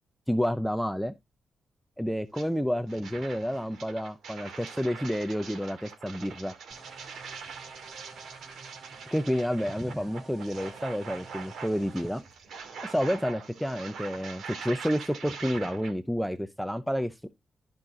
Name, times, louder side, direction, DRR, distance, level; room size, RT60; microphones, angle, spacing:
voice 1, 0.3-1.1 2.0-6.5 9.1-12.2 12.8-17.3, equal, ahead, 0.6 m, -30 dB
sound 1, 2.3-2.5 2.9-15.9, right 5 dB, 85° right, 2.5 m, -43 dB
sound 2, 6.7-12.2, right 4 dB, 60° right, 2.6 m, -50 dB
13.5 x 5.6 x 2.5 m
cardioid pair, 110°, 0 cm